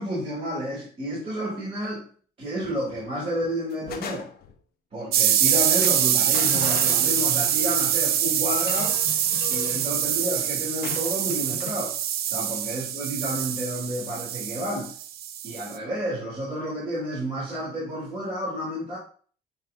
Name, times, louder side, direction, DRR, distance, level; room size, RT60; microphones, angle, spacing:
voice 1, 0.0-2.0 2.4-4.3 4.9-9.0 9.5-11.9 12.2-14.9 15.4-19.0, equal, 35° right, -6 dB, 2.7 m, -30 dB
sound 1, 2.6-3.0 3.4-4.6 5.3-5.5 5.8-7.6 8.6-9.9 10.8-11.8, left 8 dB, 65° left, 0.8 m, -39 dB
sound 2, 5.1-15.7, right 10 dB, 65° right, 0.6 m, -24 dB
Strum, 6.5-12.8, left 5 dB, 80° left, 1.2 m, -46 dB
9.1 x 4.1 x 2.5 m, 0.44 s
cardioid pair, 110°, 17 cm